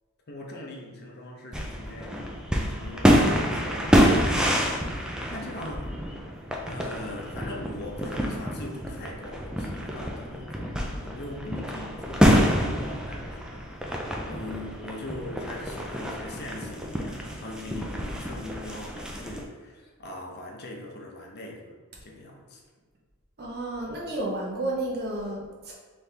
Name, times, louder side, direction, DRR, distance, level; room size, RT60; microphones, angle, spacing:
voice 1, 0.3-5.9 6.6-21.7 22.0-22.6 23.8-24.0, left 1 dB, 45° left, 0 dB, 0.7 m, -41 dB
sound 1, 1.5-19.4, equal, 5° right, 0.4 m, -27 dB
voice 2, 23.4-25.7, right 2 dB, 45° right, -2 dB, 0.9 m, -31 dB
4.1 x 3.3 x 3.3 m, 1.5 s
head